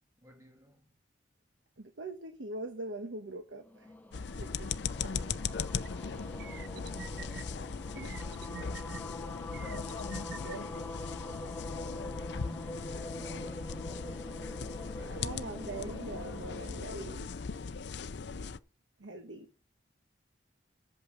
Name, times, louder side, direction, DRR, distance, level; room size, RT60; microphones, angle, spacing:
voice 1, 0.2-0.9 8.0-10.1 12.0-15.8, equal, 15° right, 2.0 m, -55 dB
voice 2, 1.8-3.9 4.4-4.7 5.7-5.8 7.1-7.2 8.0-8.1 10.3-10.7 15.1-17.3 19.0-19.5, right 2 dB, 85° right, 1.2 m, -42 dB
sound 1, 3.6-18.0, left 1 dB, 10° left, 0.7 m, -45 dB
sound 2, 4.1-18.6, left 5 dB, 65° left, 0.5 m, -39 dB
sound 3, 5.8-5.9 6.4-7.4 7.9-9.0 9.5-10.6, right 6 dB, 55° right, 0.4 m, -46 dB
8.2 x 6.9 x 6.7 m
head